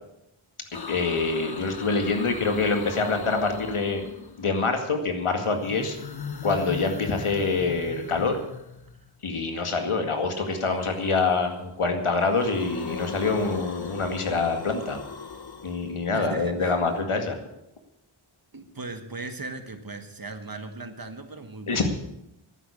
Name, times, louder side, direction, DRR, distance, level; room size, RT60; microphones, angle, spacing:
sound 1, 0.7-4.7 5.4-9.2 10.5-11.7 12.0-17.0, left 5 dB, 50° left, 1.2 m, -39 dB
voice 1, 0.9-4.0 4.4-6.0 6.4-8.4 9.2-15.0 15.6-17.4 21.7-21.9, left 4 dB, 80° left, 5 dB, 2.2 m, -25 dB
voice 2, 16.1-16.8 18.5-21.9, right 3 dB, 45° right, 7 dB, 1.7 m, -38 dB
11.5 x 9.6 x 8.6 m, 0.84 s
wide cardioid pair, 75°, 50 cm